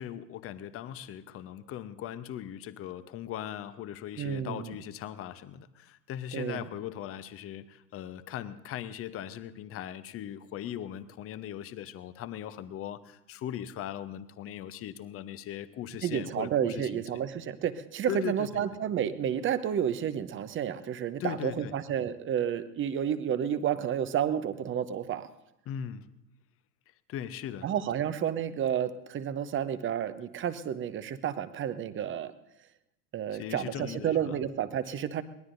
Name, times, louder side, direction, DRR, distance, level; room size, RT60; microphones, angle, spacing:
voice 1, 0.0-17.0 18.1-18.6 21.2-21.7 25.7-26.1 27.1-27.7 33.3-34.4, left 10 dB, 30° left, 13 dB, 0.8 m, -39 dB
voice 2, 4.2-4.7 6.3-6.7 16.0-25.3 27.6-32.3 33.1-35.2, right 9 dB, 25° right, 12 dB, 0.8 m, -31 dB
23.0 x 19.0 x 2.6 m, 0.85 s
hypercardioid pair, 90°, 49 cm